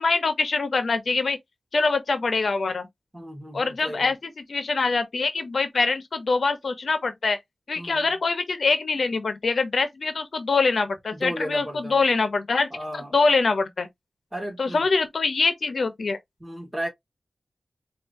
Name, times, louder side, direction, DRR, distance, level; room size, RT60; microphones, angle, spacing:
voice 1, 0.0-1.4 1.7-2.9 3.5-7.4 7.7-12.7 12.9-13.9 14.6-16.2, left 4 dB, 75° left, 0.8 m, -24 dB
voice 2, 3.1-4.1 7.8-8.1 11.1-12.0 12.7-13.2 14.3-14.9 16.4-16.9, equal, 25° right, 1.9 m, -34 dB
4.6 x 2.6 x 2.6 m
wide cardioid pair, 90°, 0 cm